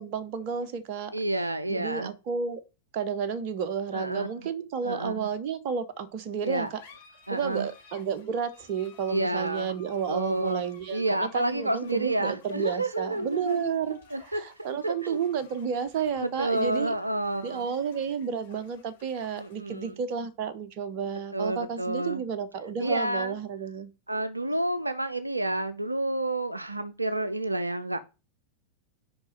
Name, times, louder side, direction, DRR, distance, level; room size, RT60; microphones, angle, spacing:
voice 1, 0.0-1.1 1.7-2.6 2.9-6.8 7.3-16.9 17.4-23.9, right 7 dB, 45° right, 1.0 m, -31 dB
voice 2, 1.1-2.1 3.9-4.3 4.8-5.3 6.4-6.7 7.3-7.7 9.1-9.8 10.1-10.6 10.9-13.7 14.1-14.4 14.8-15.2 16.2-17.6 19.4-20.0 21.3-22.2 22.8-23.3 24.1-28.0, right 1 dB, 85° right, 0.6 m, -29 dB
sound 1, 6.3-23.3, left 5 dB, 60° left, 3.8 m, -57 dB
6.0 x 5.3 x 6.4 m
figure-of-eight pair, 90°, 0 cm